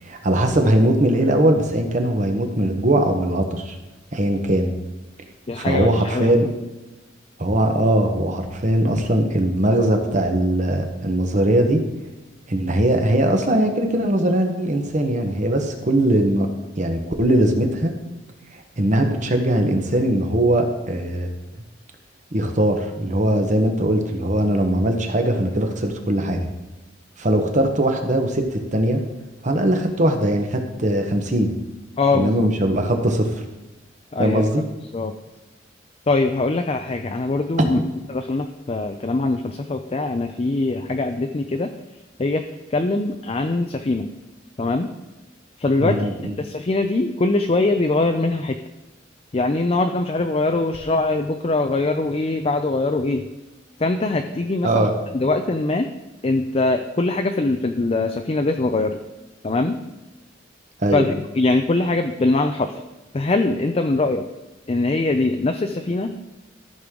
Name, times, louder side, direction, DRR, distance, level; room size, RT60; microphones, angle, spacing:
voice 1, 0.0-3.7 4.1-4.7 5.6-6.5 7.4-11.8 12.5-16.5 16.7-17.9 18.5-21.3 22.3-26.5 27.2-29.0 29.4-31.5 32.1-33.4 34.2-34.6 45.8-46.3 54.6-54.9 60.8-61.0, right 1 dB, 40° right, 5 dB, 1.1 m, -20 dB
voice 2, 5.5-6.5 32.0-32.4 34.1-34.4 34.9-35.1 36.1-37.8 38.1-41.7 42.2-42.4 42.7-44.1 44.6-44.9 45.6-48.6 49.3-53.3 53.8-54.9 55.1-55.9 56.2-59.0 59.4-59.8 60.9-62.8 63.1-64.2 64.7-66.1, left 2 dB, 30° left, 6 dB, 0.5 m, -22 dB
14.0 x 6.4 x 3.8 m, 1.1 s
head